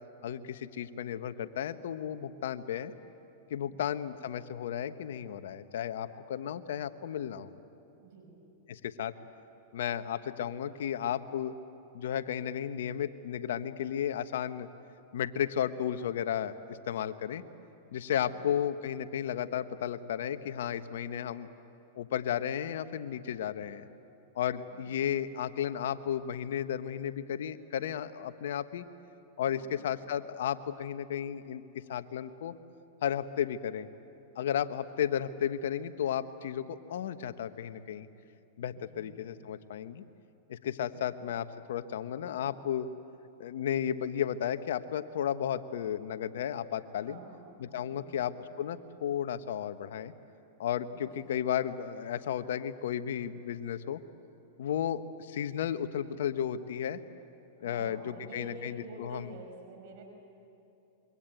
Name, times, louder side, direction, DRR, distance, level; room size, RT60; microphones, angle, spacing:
voice 1, 0.2-2.9 3.5-7.5 8.7-9.1 9.7-11.5 11.9-14.7 15.1-17.4 17.9-21.5 22.0-23.9 24.3-28.8 29.4-32.5 33.0-33.9 34.3-38.1 38.6-40.0 40.5-42.9 43.4-47.2 47.6-50.1 50.6-54.0 54.6-57.0 57.6-59.3, left 9 dB, 75° left, 11 dB, 1.2 m, -33 dB
voice 2, 8.0-8.4 24.7-24.8 29.6-29.9 38.9-39.2 40.8-41.2 47.1-47.6 47.9-48.2 50.9-51.3 57.6-60.0, right 2 dB, 60° right, 3 dB, 5.6 m, -49 dB
26.5 x 23.5 x 9.2 m, 2.8 s
hypercardioid pair, 120°, 0 cm